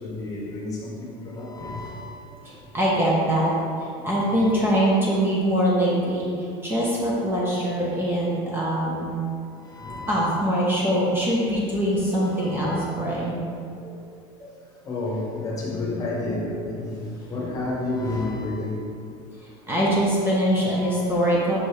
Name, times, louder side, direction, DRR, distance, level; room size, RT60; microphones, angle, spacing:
voice 1, 0.0-2.1 4.3-4.6 8.4-8.5 9.7-10.3 12.4-12.9 14.8-17.0 17.3-18.8 20.6-21.3, left 2 dB, 25° left, -4 dB, 1.3 m, -31 dB
voice 2, 2.4-9.2 10.1-13.5 13.8-13.9 14.4-14.5 19.4-21.6, equal, 15° right, -5 dB, 0.9 m, -23 dB
5.6 x 5.2 x 3.3 m, 2.4 s
cardioid pair, 145°, 13 cm